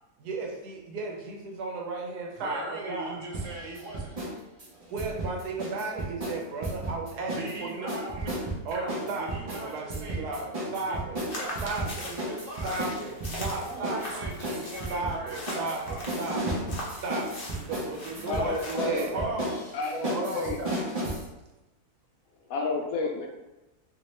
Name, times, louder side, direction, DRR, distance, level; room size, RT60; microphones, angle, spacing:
voice 1, 0.2-3.2 4.9-7.9 8.6-11.2 11.6-12.1 12.6-14.2 14.9-16.6 17.0-19.6 20.1-20.6, right 3 dB, 90° right, 0 dB, 1.3 m, -34 dB
voice 2, 2.4-4.1 7.3-8.3 8.7-10.3 10.9-11.0 11.3-12.8 13.6-16.1 18.1-19.4 20.2-20.7, right 1 dB, 65° right, -1 dB, 0.9 m, -40 dB
sound 1, 3.3-4.3 4.6-7.5 7.9-21.2, right 1 dB, 45° right, 0.4 m, -34 dB
sound 2, 11.3-19.0, left 1 dB, 50° left, 0.7 m, -41 dB
voice 3, 18.3-19.1 19.7-20.6 22.5-23.3, left 3 dB, 70° left, 0 dB, 1.0 m, -30 dB
2.9 x 2.8 x 3.1 m, 1.0 s
omnidirectional pair, 1.6 m